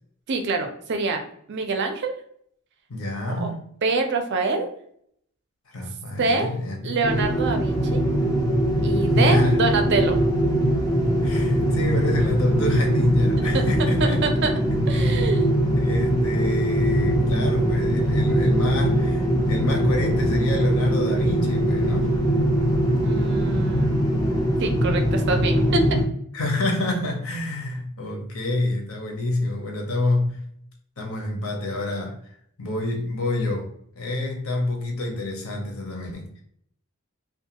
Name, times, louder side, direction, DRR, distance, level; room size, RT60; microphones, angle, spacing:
voice 1, 0.3-1.2 1.5-2.1 3.4-3.5 3.8-4.7 6.2-6.5 6.8-8.0 8.8-10.2 13.4-13.6 14.0-14.5 14.9-15.5 23.0-24.0 24.6-25.8, right 3 dB, 50° right, 5 dB, 0.4 m, -25 dB
voice 2, 2.9-3.6 5.7-6.9 9.0-9.6 11.2-14.3 14.9-15.3 15.7-22.2 26.3-30.4 31.0-32.2 32.6-33.7 34.0-36.4, left 2 dB, 65° left, 2 dB, 0.7 m, -27 dB
sound 1, 7.0-26.0, right 1 dB, 15° left, 0.5 m, -21 dB
2.4 x 2.2 x 2.7 m, 0.67 s
head